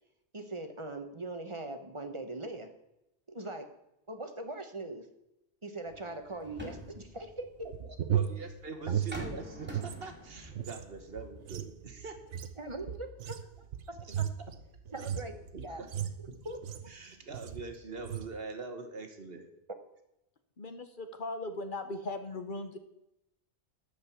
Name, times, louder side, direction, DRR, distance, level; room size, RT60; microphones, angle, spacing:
voice 1, 0.3-2.7 3.3-3.7 4.1-5.1 5.6-7.7 12.6-13.4 14.2-14.3 14.9-15.8 16.4-16.6, right 2 dB, 25° right, 7 dB, 1.1 m, -41 dB
sound 1, 5.9-8.1 8.9-11.7 12.0-12.1, equal, 10° right, 2.3 m, -46 dB
sound 2, 7.6-10.0 10.3-17.0 17.3-17.7 18.0-18.3, right 9 dB, 80° right, 1.1 m, -36 dB
voice 2, 8.1-12.1 14.0-14.1 15.5-16.5 16.9-19.5, right 3 dB, 60° right, 6 dB, 1.6 m, -43 dB
voice 3, 20.6-22.8, left 2 dB, 50° left, 8 dB, 1.1 m, -38 dB
12.5 x 5.2 x 8.4 m, 0.85 s
omnidirectional pair, 1.2 m